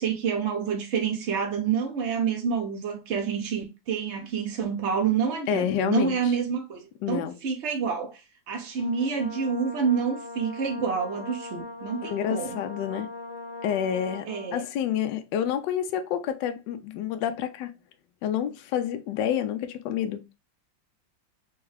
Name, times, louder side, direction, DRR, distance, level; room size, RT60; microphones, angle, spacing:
voice 1, 0.0-8.2 8.5-12.5 14.3-14.6, right 6 dB, 65° right, 0.7 m, -28 dB
voice 2, 5.5-6.2 7.0-7.4 12.0-13.1 13.6-17.7 18.2-20.2, left 9 dB, 75° left, 1.2 m, -28 dB
Brass instrument, 8.8-14.6, left 2 dB, 55° left, 0.5 m, -40 dB
4.5 x 2.3 x 3.3 m
omnidirectional pair, 2.0 m